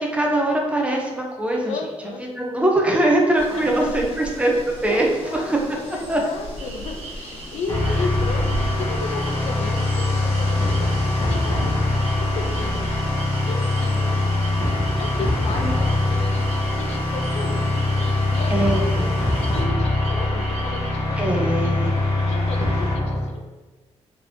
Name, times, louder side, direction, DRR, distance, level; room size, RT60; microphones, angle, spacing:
voice 1, 0.0-1.8 2.4-4.5 4.8-5.7 6.1-6.2 15.6-15.7 18.5-19.1 21.2-21.9, right 1 dB, 10° right, -1 dB, 0.5 m, -22 dB
voice 2, 1.6-2.2 3.5-4.2 4.9-13.0 13.5-14.3 15.0-18.9 19.2-23.4, left 3 dB, 75° left, 4 dB, 0.4 m, -34 dB
sound 1, 3.3-19.6, equal, 50° left, 1.2 m, -37 dB
sound 2, 6.6-20.9, right 5 dB, 75° right, 0.4 m, -40 dB
sound 3, 7.7-23.3, left 2 dB, 30° left, 0.8 m, -22 dB
3.2 x 3.1 x 2.6 m, 1.2 s
cardioid pair, 155°, 11 cm